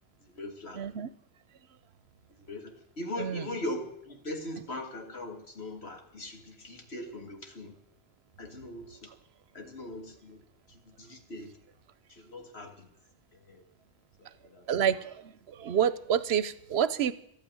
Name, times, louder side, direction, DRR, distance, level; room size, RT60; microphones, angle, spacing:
voice 1, 0.2-1.0 2.4-7.7 8.4-9.1 9.5-11.5 12.1-12.9 13.3-13.6 14.2-14.7, left 1 dB, 85° left, 3 dB, 2.3 m, -41 dB
voice 2, 0.8-1.1 3.2-3.4 14.7-17.1, right 9 dB, 85° right, 16 dB, 1.0 m, -28 dB
13.0 x 9.0 x 9.5 m, 0.75 s
omnidirectional pair, 1.1 m